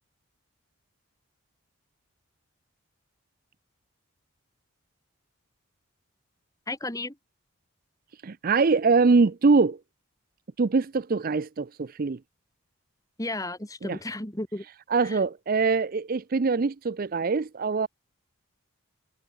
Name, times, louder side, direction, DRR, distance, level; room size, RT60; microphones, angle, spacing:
voice 1, 6.7-7.2 13.2-14.7 15.0-15.2, left 2 dB, 15° left, 2.5 m, -33 dB
voice 2, 8.2-9.8 10.6-12.2 13.8-14.0 14.9-17.9, right 4 dB, 40° right, 0.5 m, -23 dB
head